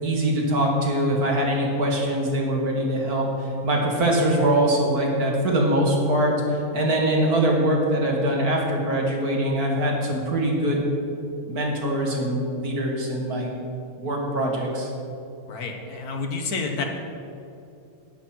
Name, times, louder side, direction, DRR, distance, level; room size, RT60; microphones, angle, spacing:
voice 1, 0.0-10.9 11.5-13.5 14.0-14.9, right 1 dB, 80° right, -1 dB, 2.6 m, -23 dB
voice 2, 15.5-16.8, left 4 dB, 85° left, 3 dB, 1.8 m, -29 dB
11.5 x 9.5 x 5.9 m, 2.7 s
omnidirectional pair, 1.6 m